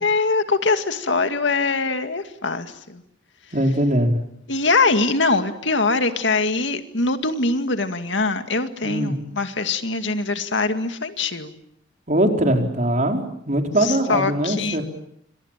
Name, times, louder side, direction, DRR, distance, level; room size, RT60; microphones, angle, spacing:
voice 1, 0.0-3.0 4.5-11.6 13.8-14.8, left 3 dB, 70° left, 8 dB, 2.2 m, -22 dB
voice 2, 3.5-4.2 8.8-9.1 12.1-14.8, right 1 dB, 40° right, 3 dB, 4.5 m, -21 dB
29.5 x 26.0 x 7.5 m, 0.73 s
head